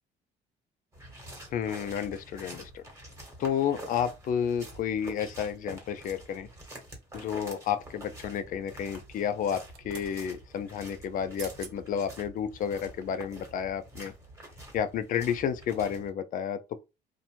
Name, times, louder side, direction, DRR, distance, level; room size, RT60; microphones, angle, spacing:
sound 1, 0.9-16.1, right 1 dB, 15° right, 1.1 m, -47 dB
voice 1, 1.5-2.8 3.4-6.5 7.1-14.1 14.7-16.8, left 8 dB, 55° left, 0.4 m, -31 dB
sound 2, 7.1-7.7 9.4-10.1 11.1-11.2 11.4-11.8 12.3-12.4, right 8 dB, 80° right, 0.6 m, -47 dB
2.6 x 2.1 x 2.9 m
cardioid pair, 110°, 17 cm